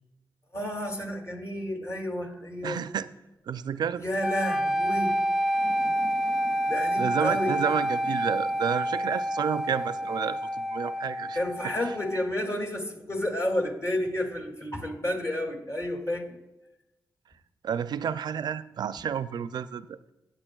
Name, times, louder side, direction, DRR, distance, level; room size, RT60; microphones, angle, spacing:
voice 1, 0.5-2.8 4.0-5.2 6.6-7.5 11.3-16.2, left 1 dB, 40° left, 2 dB, 2.4 m, -31 dB
voice 2, 2.6-3.1 3.5-4.0 7.0-11.4 11.8-11.9 17.6-20.0, right 8 dB, 70° right, 14 dB, 0.4 m, -30 dB
sound 1, 4.2-12.3, equal, 5° right, 0.5 m, -28 dB
sound 2, 5.5-12.5, left 2 dB, 85° left, 2.4 m, -51 dB
15.5 x 8.5 x 2.3 m, 0.97 s
cardioid pair, 55°, 8 cm